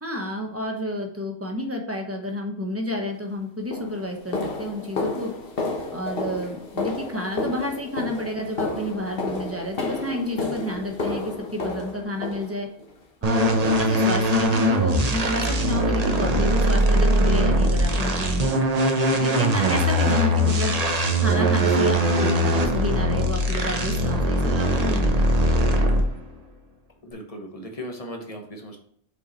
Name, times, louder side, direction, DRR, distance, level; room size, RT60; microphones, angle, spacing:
voice 1, 0.0-5.3 5.9-12.7 13.2-18.6 19.2-20.7 21.2-25.8, left 1 dB, 15° right, 2 dB, 1.0 m, -30 dB
sound 1, 3.0-3.2 3.7-12.9 13.4-13.7 14.0-14.2 14.6-14.8 15.2-15.3 15.8-15.9, left 3 dB, 55° left, 1.4 m, -31 dB
sound 2, 13.2-26.2, right 1 dB, 35° right, 0.8 m, -21 dB
voice 2, 27.0-28.8, equal, 30° left, 2 dB, 1.2 m, -37 dB
5.6 x 4.8 x 4.2 m, 0.65 s
omnidirectional pair, 1.2 m